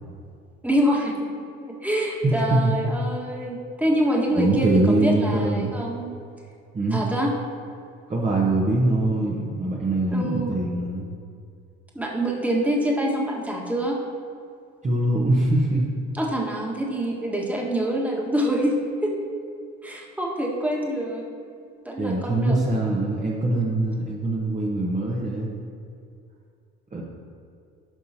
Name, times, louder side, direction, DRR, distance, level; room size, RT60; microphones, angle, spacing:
voice 1, 0.6-1.3 1.6-6.1 6.9-7.3 10.1-10.5 11.9-14.0 16.1-18.8 19.0-19.1 19.8-21.2 21.8-22.6, right 1 dB, 5° right, -2 dB, 1.6 m, -25 dB
voice 2, 2.2-2.7 4.4-5.7 6.7-7.0 8.1-11.1 14.8-15.8 22.0-25.5 26.9-27.0, right 2 dB, 25° right, -3 dB, 1.1 m, -23 dB
12.0 x 5.4 x 2.8 m, 2.4 s
figure-of-eight pair, 55°, 32 cm